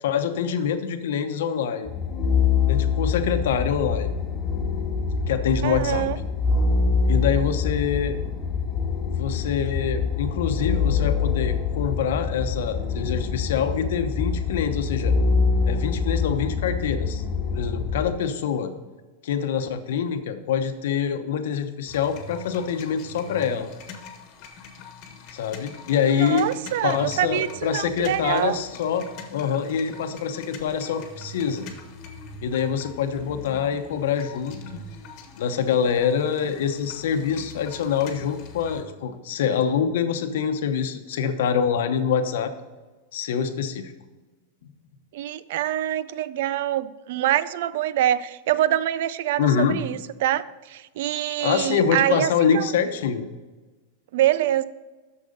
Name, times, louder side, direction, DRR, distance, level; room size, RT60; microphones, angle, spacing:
voice 1, 0.0-1.9 2.7-4.1 5.3-6.1 7.1-8.2 9.1-15.2 15.6-17.2 17.5-18.7 19.2-23.7 25.3-26.5 26.8-29.1 29.3-31.7 32.4-34.8 35.4-42.5 43.1-43.9 49.4-49.8 51.4-53.2, left 7 dB, 75° left, 8 dB, 0.9 m, -25 dB
sound 1, 1.9-18.1, left 5 dB, 15° left, 1.6 m, -25 dB
voice 2, 5.6-6.2 26.2-28.6 45.1-52.7 54.1-54.6, right 12 dB, 65° right, 17 dB, 0.4 m, -25 dB
sound 2, 21.9-38.8, left 3 dB, 45° left, 1.3 m, -42 dB
6.6 x 6.5 x 5.1 m, 1.2 s
supercardioid pair, 145°, 0 cm